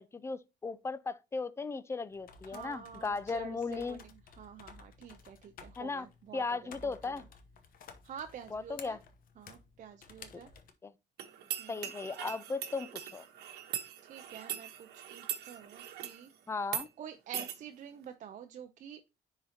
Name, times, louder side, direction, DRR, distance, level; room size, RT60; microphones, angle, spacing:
voice 1, 0.0-4.0 5.8-6.1 6.3-7.2 8.5-9.0 10.8-10.9 11.7-13.2 16.5-16.9, left 4 dB, 15° left, 0.4 m, -37 dB
sound 1, 2.1-10.7, left 5 dB, 60° left, 1.0 m, -55 dB
voice 2, 2.4-7.3 8.0-9.0 9.4-10.5 11.6-11.9 14.0-16.3 17.0-19.0, right 8 dB, 50° right, 0.6 m, -48 dB
sound 2, 11.2-16.2 16.6-16.9 17.3-17.6, right 10 dB, 70° right, 1.1 m, -40 dB
9.9 x 3.9 x 2.8 m
cardioid pair, 110°, 17 cm